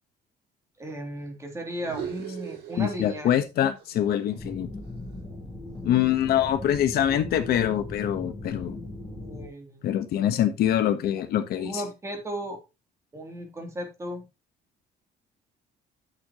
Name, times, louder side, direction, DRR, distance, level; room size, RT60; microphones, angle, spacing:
voice 1, 0.8-3.3 9.2-9.8 11.1-11.2 11.6-12.6 13.1-14.2, right 1 dB, 15° right, 3 dB, 2.9 m, -35 dB
sound 1, 1.7-3.5 3.8-6.0, right 8 dB, 85° right, 4.4 m, -41 dB
voice 2, 2.8-4.7 5.8-8.8 9.8-11.8, left 11 dB, 65° left, 8 dB, 1.3 m, -24 dB
sound 2, 4.4-9.5, left 2 dB, 10° left, 3.7 m, -38 dB
10.5 x 6.7 x 3.0 m, 0.26 s
cardioid pair, 155°, 18 cm